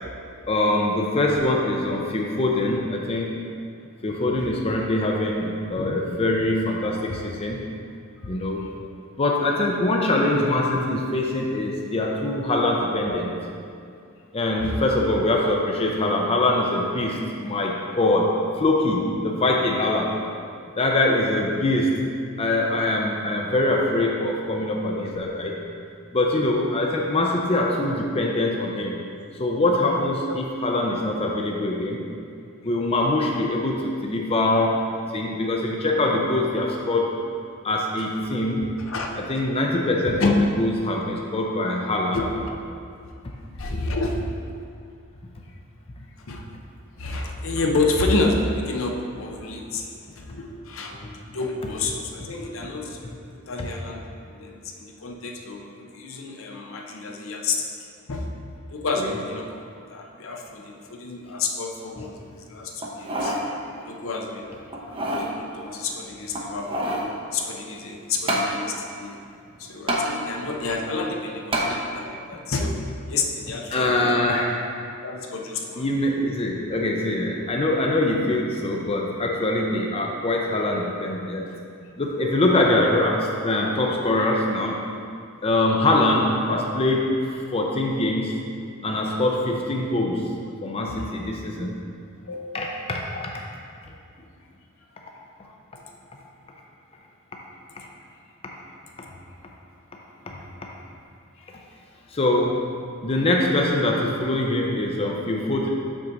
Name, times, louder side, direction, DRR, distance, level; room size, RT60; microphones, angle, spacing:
voice 1, 0.5-3.3 4.0-7.6 8.2-8.6 9.2-13.3 14.3-20.1 20.8-22.1 22.4-25.5 26.1-29.0 29.4-32.0 32.6-34.7 35.1-37.1 37.6-38.7 39.3-40.3 40.6-42.2 53.6-53.7 59.0-59.1 62.0-62.1 73.7-74.5 75.8-81.5 82.0-84.7 85.4-88.4 88.8-90.3 90.6-91.7 92.5-93.3 102.1-102.7 103.0-105.7, left 2 dB, 30° left, 0 dB, 0.5 m, -23 dB
voice 2, 38.8-39.1 40.2-40.4 42.1-42.6 43.6-44.2 46.3-46.5 47.0-49.8 50.2-53.0 53.5-57.6 58.1-58.3 58.7-59.6 59.9-63.3 63.9-64.6 64.9-67.1 67.3-69.2 69.6-72.8 73.1-74.4 75.0-75.8 86.5-86.6 90.9-91.0 92.3-93.2 97.7-97.9 101.4-101.6, left 3 dB, 65° left, 1 dB, 0.7 m, -29 dB
sound 1, 62.8-63.4 63.9-64.0 64.7-65.3 66.3-67.1 68.3-68.5 69.9-70.1 71.5-71.7 72.3-72.4, equal, 25° right, 0.7 m, -26 dB
6.1 x 6.0 x 3.9 m, 2.4 s
head